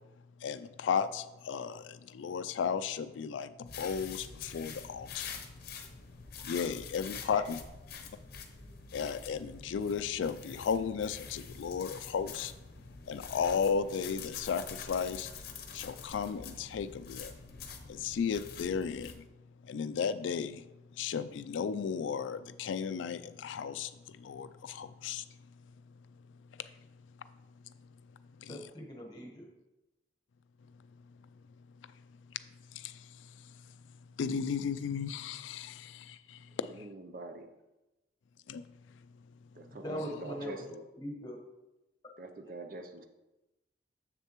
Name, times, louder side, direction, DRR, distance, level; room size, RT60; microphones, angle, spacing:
voice 1, 0.4-5.3 6.4-7.6 8.9-12.5 13.1-15.3 15.7-17.3 17.9-19.2 19.6-20.6 21.0-25.2 26.6-26.7 28.4-28.7 32.7-33.1 34.2-36.7 38.5-38.7, left 6 dB, 90° left, 13 dB, 0.3 m, -34 dB
sound 1, 3.7-19.1, left 5 dB, 55° left, 0.8 m, -46 dB
voice 2, 28.5-29.5 39.8-40.6 41.0-41.4, left 1 dB, 20° left, 0 dB, 1.2 m, -40 dB
voice 3, 36.7-37.5 39.5-40.8 42.2-43.0, right 2 dB, 50° right, 6 dB, 0.6 m, -44 dB
7.4 x 6.5 x 3.0 m, 0.99 s
head